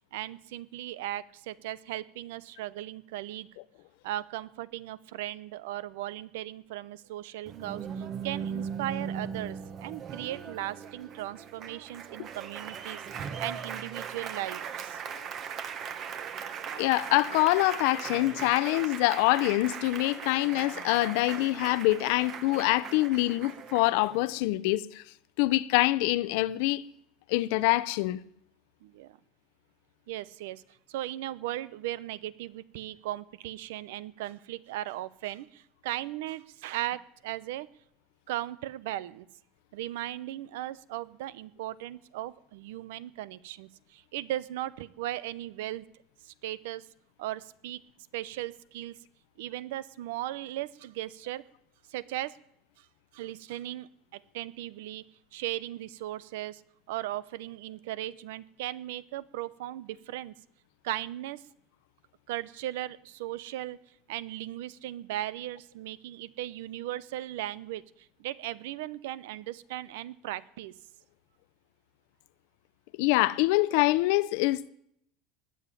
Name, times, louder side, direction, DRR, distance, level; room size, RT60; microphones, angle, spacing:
voice 1, 0.1-3.5 4.0-15.0 28.8-29.2 30.1-30.6 30.9-37.7 38.3-39.3 39.7-45.8 46.2-46.8 47.2-47.8 48.1-49.0 49.4-51.4 51.9-52.4 53.1-55.0 55.3-56.6 56.9-60.3 60.8-61.4 62.3-63.8 64.1-67.8 68.2-70.7, right 14 dB, 85° right, 0.8 m, -37 dB
Applause, 7.5-24.4, right 7 dB, 30° right, 1.1 m, -39 dB
voice 2, 16.8-25.0 25.4-26.8 27.3-28.2 73.0-74.7, left 18 dB, 65° left, 0.7 m, -25 dB
19.5 x 7.4 x 9.9 m
cardioid pair, 165°, 0 cm